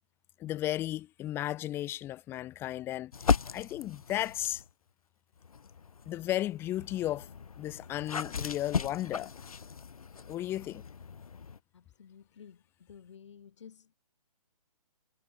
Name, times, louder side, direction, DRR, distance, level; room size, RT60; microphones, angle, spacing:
voice 1, 0.4-3.1 3.5-4.6 6.0-7.3 7.6-9.3 10.3-10.8, left 14 dB, 10° left, 6.8 m, -34 dB
sound 1, 3.1-4.7 5.4-11.6, left 6 dB, 70° left, 4.7 m, -36 dB
voice 2, 12.0-12.5 12.9-13.7, left 7 dB, 50° left, 6.7 m, -51 dB
hypercardioid pair, 170°, 19 cm